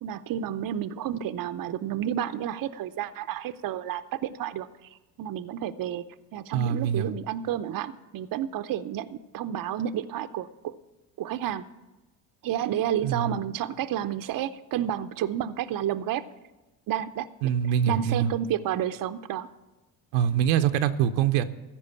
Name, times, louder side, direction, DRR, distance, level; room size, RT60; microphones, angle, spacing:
voice 1, 0.0-6.0 6.3-10.7 11.2-11.6 12.4-16.2 16.9-17.3 17.9-19.5, right 10 dB, 45° right, 11 dB, 0.6 m, -30 dB
voice 2, 6.5-7.1 13.0-13.3 17.4-18.3 20.1-21.4, right 9 dB, 80° right, 9 dB, 0.8 m, -24 dB
14.5 x 5.0 x 8.4 m, 1.1 s
hypercardioid pair, 65°, 50 cm